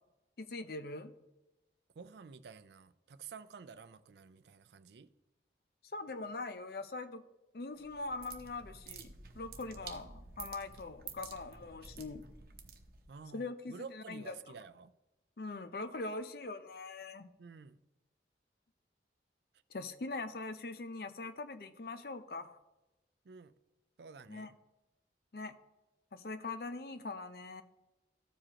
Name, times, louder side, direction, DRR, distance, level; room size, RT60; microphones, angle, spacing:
voice 1, 0.4-1.1 5.9-7.2 7.5-12.3 13.3-14.3 15.4-17.3 19.7-22.6 24.3-24.5 25.3-25.6 26.1-27.6, left 3 dB, 60° left, 0.6 m, -42 dB
voice 2, 2.0-5.1 13.1-14.9 17.4-17.8 23.2-23.5 24.0-24.6, right 5 dB, 75° right, 0.4 m, -51 dB
sound 1, 7.8-13.2, right 5 dB, 55° right, 0.9 m, -51 dB
14.5 x 4.9 x 2.9 m
head